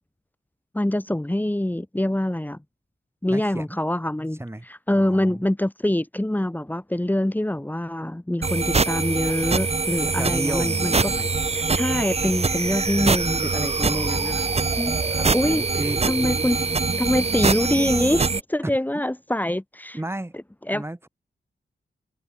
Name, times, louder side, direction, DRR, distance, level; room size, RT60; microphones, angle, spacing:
voice 1, 0.7-2.6 3.2-4.4 4.7-11.1 11.5-14.5 14.8-15.1 15.3-15.6 16.1-16.6 17.0-20.0 20.7-20.8, left 1 dB, 10° left, 3.5 m, -25 dB
voice 2, 3.3-3.8 4.4-4.7 4.9-5.4 9.2-9.7 10.2-11.3 13.8-14.7 15.1-16.0 18.6-18.8 19.9-20.3 20.7-21.1, right 1 dB, 10° right, 3.7 m, -33 dB
sound 1, 8.4-18.4, right 4 dB, 30° right, 1.1 m, -23 dB
wide cardioid pair, 125°, 21 cm